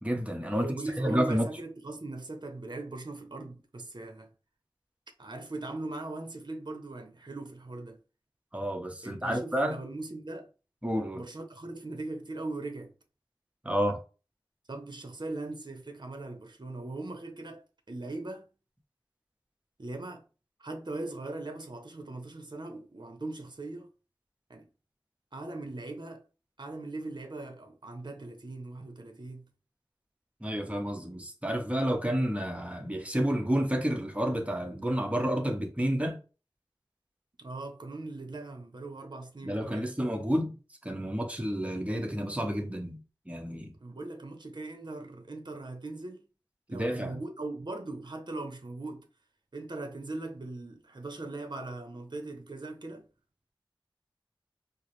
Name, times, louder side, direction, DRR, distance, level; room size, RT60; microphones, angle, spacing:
voice 1, 0.0-0.7 1.0-1.5 8.5-9.8 10.8-11.2 13.6-14.0 30.4-36.2 39.4-40.5 40.8-43.0 43.3-43.7 46.7-47.2, equal, 15° right, 0.9 m, -30 dB
voice 2, 0.5-4.3 5.2-8.0 9.0-10.5 11.1-12.9 14.7-18.5 19.8-20.2 20.6-23.9 24.5-24.7 25.3-26.2 26.6-29.5 37.4-39.9 43.8-46.2 46.7-49.1 49.5-53.1, right 2 dB, 55° right, 0.7 m, -40 dB
4.6 x 2.0 x 3.1 m
wide cardioid pair, 40°, 9 cm